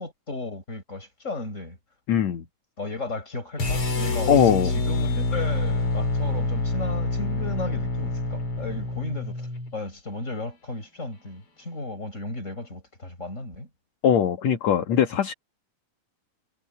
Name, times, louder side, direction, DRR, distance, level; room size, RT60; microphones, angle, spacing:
voice 1, 0.0-1.8 2.8-4.3 4.6-13.7, left 2 dB, 20° left, 6.4 m, -35 dB
voice 2, 2.1-2.4 4.3-4.7 14.0-15.3, left 8 dB, 60° left, 2.6 m, -21 dB
sound 1, 3.6-9.7, left 2 dB, 40° left, 5.1 m, -27 dB
omnidirectional pair, 4.0 m